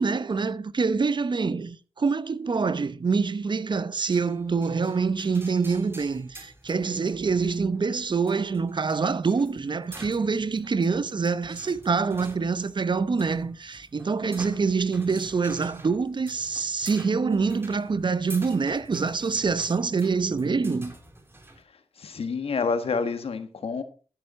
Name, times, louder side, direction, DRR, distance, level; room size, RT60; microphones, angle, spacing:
voice 1, 0.0-20.9, right 4 dB, 50° right, 0.8 m, -26 dB
sound 1, 4.1-21.6, right 1 dB, 25° right, 2.9 m, -48 dB
voice 2, 22.0-23.8, left 5 dB, 75° left, 1.5 m, -28 dB
13.5 x 6.9 x 4.3 m
cardioid pair, 50°, 10 cm